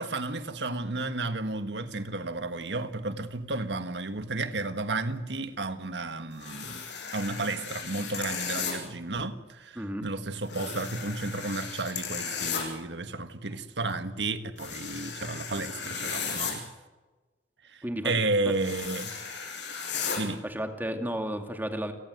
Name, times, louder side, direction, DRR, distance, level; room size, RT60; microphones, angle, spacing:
voice 1, 0.0-6.8 7.1-16.6 17.6-19.1 20.2-20.4, right 2 dB, 80° right, 1.6 m, -32 dB
sound 1, 6.4-8.7 10.5-12.6 14.6-16.5 18.5-20.2, left 6 dB, 90° left, 6.9 m, -35 dB
voice 2, 17.8-18.2 20.4-21.9, equal, 10° right, 2.5 m, -32 dB
29.5 x 19.0 x 8.1 m
head